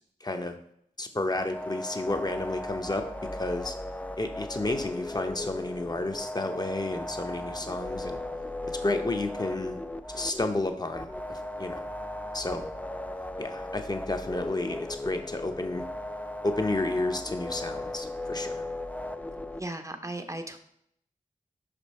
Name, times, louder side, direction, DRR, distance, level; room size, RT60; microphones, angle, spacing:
voice 1, 0.2-0.5 1.0-3.0 3.3-3.7 4.2-8.2 8.8-9.8 10.1-11.8 12.3-12.7 13.4-15.8 16.4-18.7, left 2 dB, 30° left, 6 dB, 0.8 m, -31 dB
sound 1, 1.3-19.6, left 1 dB, 10° left, 0.4 m, -37 dB
voice 2, 19.6-20.6, right 1 dB, 20° right, 6 dB, 0.7 m, -36 dB
5.9 x 5.3 x 4.2 m, 0.70 s
wide cardioid pair, 60°, 14 cm